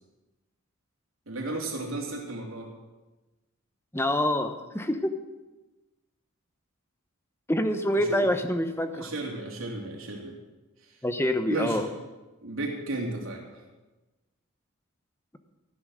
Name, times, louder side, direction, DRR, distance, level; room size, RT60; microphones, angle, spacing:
voice 1, 1.3-2.7 7.9-8.3 8.9-10.4 11.5-11.8 12.4-13.6, right 2 dB, 75° right, -1 dB, 3.1 m, -34 dB
voice 2, 3.9-5.1 7.5-9.1 11.0-11.9, left 1 dB, 10° left, 8 dB, 0.9 m, -26 dB
15.0 x 10.5 x 6.4 m, 1.1 s
head